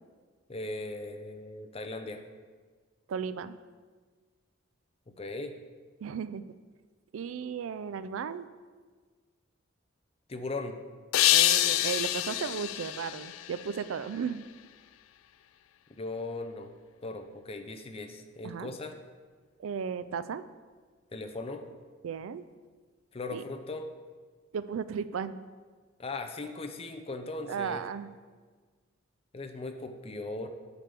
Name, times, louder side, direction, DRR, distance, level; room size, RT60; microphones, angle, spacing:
voice 1, 0.5-2.2 5.1-5.6 10.3-10.8 16.0-16.7 17.0-19.0 21.1-21.7 23.1-23.9 26.0-27.8 29.3-30.5, left 2 dB, 30° left, 6 dB, 0.6 m, -38 dB
voice 2, 3.1-3.5 6.0-6.4 7.1-8.5 11.3-14.5 18.4-18.7 19.6-20.4 22.0-22.4 23.3-23.4 24.5-25.4 27.5-28.1, right 6 dB, 80° right, 13 dB, 0.4 m, -35 dB
sound 1, 11.1-14.3, left 14 dB, 80° left, 0.3 m, -27 dB
8.9 x 3.4 x 6.7 m, 1.5 s
head